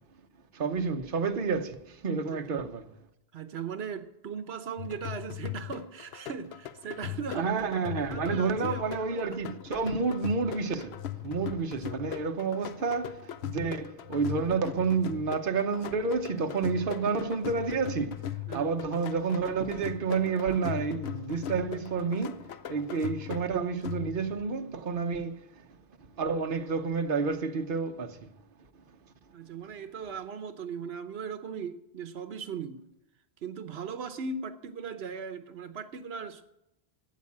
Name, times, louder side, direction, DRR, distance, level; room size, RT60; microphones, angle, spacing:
voice 1, 0.5-2.9 7.3-18.2 18.5-28.3, right 5 dB, 60° right, 1.1 m, -30 dB
voice 2, 2.3-2.6 3.3-7.5 8.1-9.0 18.5-18.7 29.3-32.8 33.4-36.4, right 6 dB, 85° right, 1.1 m, -38 dB
sound 1, 4.8-24.4, left 11 dB, 90° left, 0.9 m, -40 dB
13.0 x 8.5 x 8.5 m
omnidirectional pair, 1.0 m